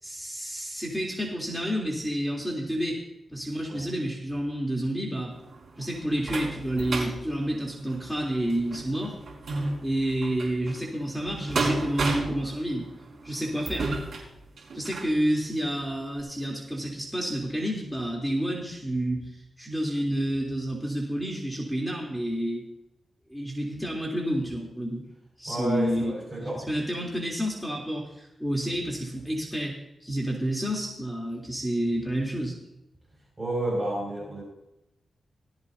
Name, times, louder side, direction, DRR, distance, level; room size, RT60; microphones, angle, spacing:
voice 1, 0.0-3.0 3.3-5.3 5.8-9.2 9.8-12.9 13.2-13.9 14.7-19.3 19.6-22.7 23.3-25.0 25.4-26.1 26.4-32.6, right 1 dB, ahead, -2 dB, 3.4 m, -29 dB
sound 1, 5.3-15.2 15.7-15.8 16.2-16.3, right 2 dB, 65° right, 5.0 m, -33 dB
voice 2, 25.5-26.6 33.4-34.4, right 1 dB, 25° right, -2 dB, 6.1 m, -30 dB
18.0 x 15.5 x 2.8 m, 0.87 s
cardioid pair, 90°, 0 cm